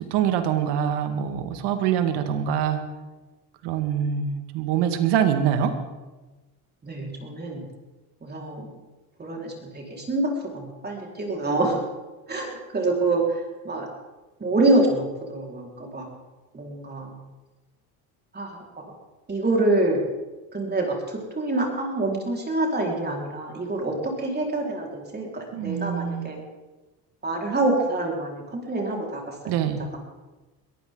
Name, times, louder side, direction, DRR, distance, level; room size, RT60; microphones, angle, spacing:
voice 1, 0.0-2.8 3.6-5.8 25.5-26.3 29.5-29.8, right 9 dB, 70° right, 8 dB, 2.1 m, -24 dB
voice 2, 6.8-7.6 8.2-8.7 9.2-11.8 12.3-13.9 14.4-16.1 16.5-17.2 18.3-18.6 19.3-20.0 20.5-26.4 27.2-30.0, right 2 dB, 25° right, -1 dB, 4.8 m, -26 dB
22.0 x 15.0 x 4.0 m, 1.2 s
supercardioid pair, 90°, 41 cm